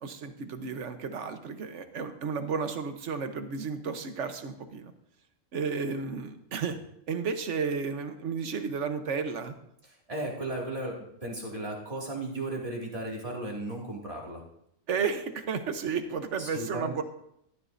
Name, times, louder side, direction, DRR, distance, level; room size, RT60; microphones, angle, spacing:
voice 1, 0.0-4.9 5.5-6.8 7.1-9.5 14.9-17.0, right 5 dB, 65° right, 8 dB, 1.3 m, -32 dB
voice 2, 9.8-14.4 16.4-16.9, right 2 dB, 25° right, -3 dB, 2.5 m, -35 dB
15.0 x 12.5 x 2.6 m, 0.76 s
omnidirectional pair, 1.4 m